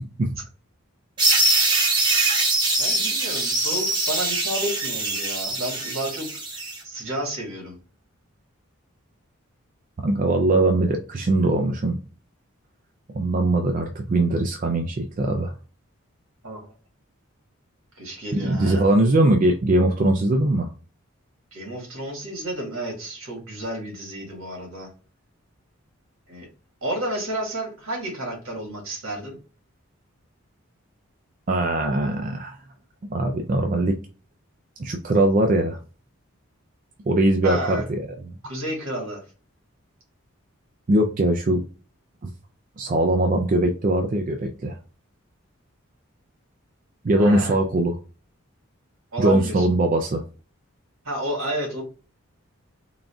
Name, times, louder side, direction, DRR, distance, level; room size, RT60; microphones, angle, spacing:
sound 1, 1.2-6.8, right 2 dB, 20° right, 0.9 m, -23 dB
voice 1, 2.8-7.8 16.4-16.7 18.0-18.9 21.5-24.9 26.3-26.5 26.8-29.4 37.4-37.9 38.4-39.2 47.1-47.6 49.1-49.7 51.0-51.8, right 1 dB, 80° right, 0 dB, 1.8 m, -31 dB
voice 2, 10.0-12.0 13.1-15.5 18.3-20.7 31.5-32.6 33.1-34.0 34.8-35.8 37.1-38.0 40.9-41.6 42.2-42.3 42.8-44.8 47.0-48.0 49.2-50.2, right 1 dB, 40° right, 4 dB, 0.4 m, -21 dB
3.9 x 2.4 x 3.4 m, 0.36 s
head